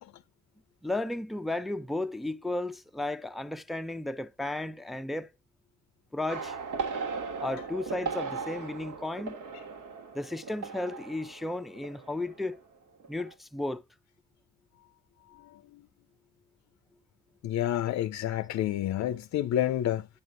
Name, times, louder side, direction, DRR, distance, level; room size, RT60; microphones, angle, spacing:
voice 1, 0.8-5.3 6.1-6.6 7.4-9.4 10.1-12.6 13.1-13.8, left 2 dB, ahead, 0.4 m, -34 dB
sound 1, 6.3-12.7 13.0-13.3, right 5 dB, 80° right, 1.9 m, -38 dB
voice 2, 17.4-20.1, left 12 dB, 60° left, 0.5 m, -29 dB
8.7 x 7.6 x 2.5 m
cardioid pair, 90°, 30 cm